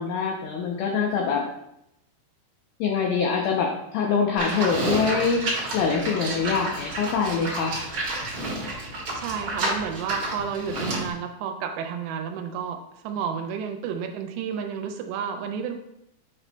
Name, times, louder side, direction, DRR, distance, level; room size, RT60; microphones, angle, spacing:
voice 1, 0.0-1.4 2.8-5.5 5.7-7.9, left 5 dB, 90° left, 1 dB, 2.1 m, -24 dB
Livestock farm animals working animals, 4.4-11.1, right 2 dB, 60° right, 1.3 m, -30 dB
voice 2, 9.1-15.8, right 7 dB, 85° right, 5 dB, 2.7 m, -31 dB
7.9 x 6.0 x 2.2 m, 0.81 s
omnidirectional pair, 5.1 m